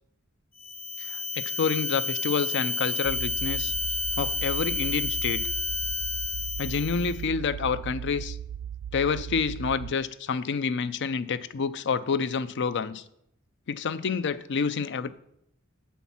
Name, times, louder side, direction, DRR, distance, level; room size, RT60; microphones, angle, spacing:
sound 1, 0.6-7.2, left 4 dB, 40° left, 1.1 m, -30 dB
voice 1, 1.1-3.7 4.2-5.5 6.6-8.4 8.9-13.0 13.7-15.1, left 5 dB, 55° left, 15 dB, 0.5 m, -28 dB
sound 2, 3.0-9.9, right 9 dB, 75° right, 0.3 m, -37 dB
8.3 x 5.8 x 7.2 m, 0.75 s
head